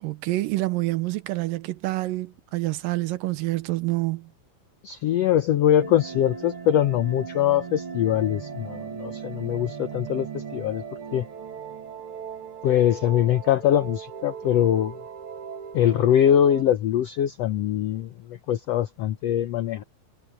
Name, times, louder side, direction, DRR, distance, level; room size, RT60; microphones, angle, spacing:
voice 1, 0.0-4.3, right 18 dB, 85° right, 2.5 m, -27 dB
voice 2, 4.8-10.8 11.1-11.3 12.6-15.0 15.7-19.8, left 11 dB, 75° left, 1.5 m, -22 dB
sound 1, 5.8-16.6, right 7 dB, 45° right, 2.5 m, -38 dB
omnidirectional pair, 3.9 m